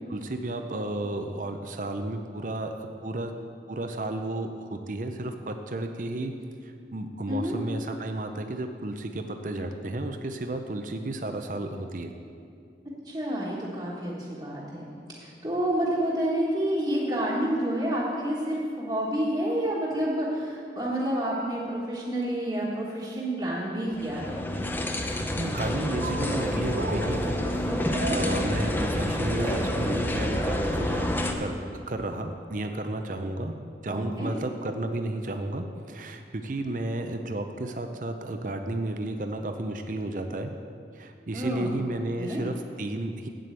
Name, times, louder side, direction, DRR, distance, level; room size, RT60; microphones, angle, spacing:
voice 1, 0.1-3.3 3.7-6.3 6.6-12.1 25.0-27.4 28.1-40.5 40.9-43.3, right 1 dB, 45° right, 6 dB, 0.6 m, -32 dB
voice 2, 13.0-24.4 27.7-28.2 33.9-34.3 41.3-41.7 42.2-42.4, right 1 dB, 25° right, -9 dB, 1.4 m, -29 dB
sound 1, 23.9-31.3, left 1 dB, 10° left, 0.6 m, -28 dB
Cheering, 25.9-30.8, right 2 dB, 60° right, 1.3 m, -36 dB
8.4 x 7.6 x 8.3 m, 2.4 s
head